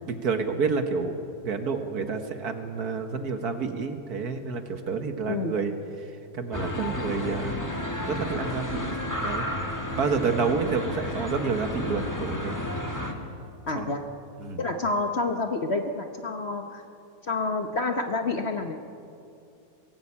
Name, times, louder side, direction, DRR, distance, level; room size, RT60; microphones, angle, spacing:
voice 1, 0.1-1.1 1.4-5.7 6.0-7.5 8.1-8.9 9.2-12.6 13.7-14.0 14.4-14.6, right 5 dB, 60° right, 7 dB, 1.8 m, -29 dB
sound 1, 6.5-13.1, left 1 dB, 10° left, 1.6 m, -32 dB
voice 2, 13.7-14.0 14.6-16.8 17.3-18.8, left 3 dB, 45° left, 5 dB, 1.1 m, -28 dB
22.0 x 17.0 x 8.5 m, 2.5 s
omnidirectional pair, 1.9 m